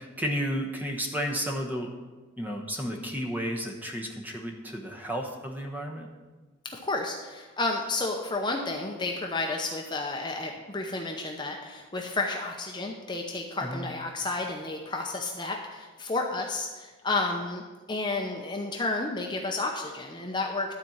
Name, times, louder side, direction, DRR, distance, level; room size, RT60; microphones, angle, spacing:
voice 1, 0.0-1.9 2.4-6.1 13.6-13.9, equal, 10° right, 1 dB, 1.0 m, -32 dB
voice 2, 6.6-17.6 17.9-20.7, left 3 dB, 20° left, 1 dB, 0.7 m, -31 dB
12.0 x 4.3 x 7.2 m, 1.3 s
head